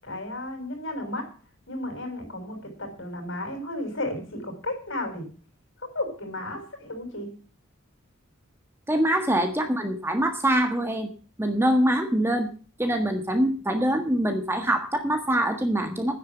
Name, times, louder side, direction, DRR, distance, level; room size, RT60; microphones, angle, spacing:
voice 1, 0.0-1.3 1.7-5.3 5.8-7.3, left 1 dB, 60° left, 4 dB, 6.6 m, -33 dB
voice 2, 8.9-11.1 11.4-12.5 12.8-16.2, right 1 dB, 10° right, 5 dB, 1.5 m, -24 dB
11.5 x 10.0 x 7.3 m, 0.38 s
head